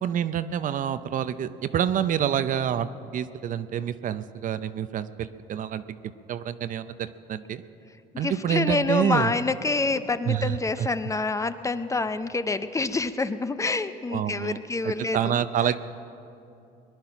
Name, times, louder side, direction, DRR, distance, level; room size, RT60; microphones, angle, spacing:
voice 1, 0.0-7.6 8.2-9.3 10.3-10.9 14.1-15.8, right 9 dB, 50° right, 13 dB, 0.6 m, -28 dB
voice 2, 8.1-15.3, left 3 dB, 20° left, 12 dB, 0.5 m, -27 dB
20.5 x 11.0 x 5.8 m, 2.7 s
cardioid pair, 110°, 17 cm